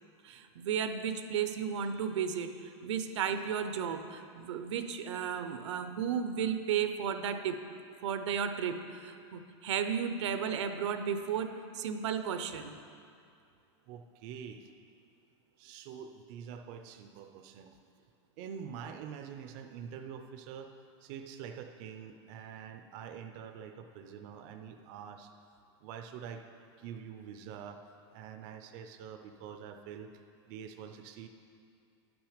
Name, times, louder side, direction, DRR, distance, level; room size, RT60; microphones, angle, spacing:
voice 1, 0.2-7.6 8.0-12.8, right 7 dB, 80° right, 9 dB, 0.7 m, -34 dB
voice 2, 13.9-14.7 15.6-17.8 18.4-20.7 21.0-25.3 25.8-26.4 26.8-27.8 28.1-30.1 30.5-31.3, right 8 dB, 35° right, 6 dB, 0.4 m, -45 dB
10.5 x 6.1 x 5.0 m, 2.4 s
supercardioid pair, 165°, 15 cm